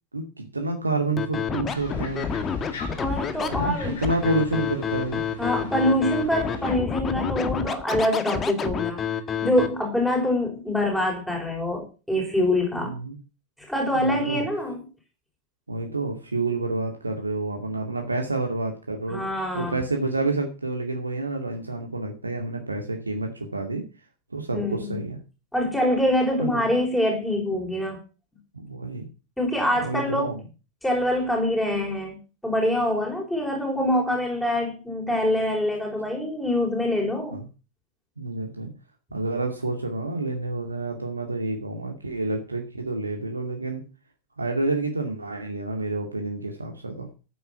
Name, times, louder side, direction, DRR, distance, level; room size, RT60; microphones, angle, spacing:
voice 1, 0.1-2.3 3.5-5.2 12.7-13.2 14.0-14.5 15.7-19.2 19.5-23.8 24.3-25.2 26.4-26.6 28.5-29.0 29.7-30.4 37.3-37.4 38.2-38.7 39.1-43.8 44.4-47.1, right 2 dB, 80° right, 2 dB, 2.3 m, -29 dB
Scratching (performance technique), 1.2-9.7, left 7 dB, 25° left, 1.8 m, -28 dB
sound 1, 1.7-6.8, left 4 dB, 60° left, 5.6 m, -40 dB
voice 2, 3.0-4.0 5.4-9.0 9.4-12.9 13.7-14.8 19.1-19.8 24.5-25.0 25.5-28.0 29.4-30.3 30.8-37.4, left 1 dB, 5° left, 0 dB, 5.2 m, -25 dB
14.0 x 9.5 x 6.1 m, 0.33 s
figure-of-eight pair, 90°, 0 cm